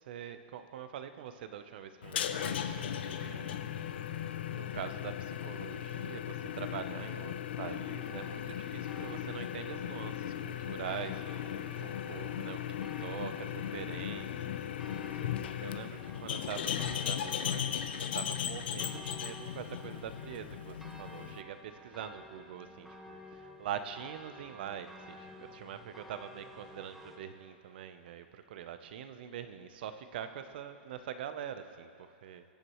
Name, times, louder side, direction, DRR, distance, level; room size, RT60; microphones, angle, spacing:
voice 1, 0.0-3.6 4.5-14.6 15.1-15.2 15.6-22.9 23.6-32.4, right 9 dB, 65° right, 10 dB, 0.7 m, -44 dB
sound 1, 2.0-21.4, left 9 dB, 75° left, 0.6 m, -37 dB
sound 2, 7.9-27.2, left 1 dB, 5° right, 1.0 m, -53 dB
20.5 x 7.9 x 3.1 m, 2.4 s
hypercardioid pair, 140°, 6 cm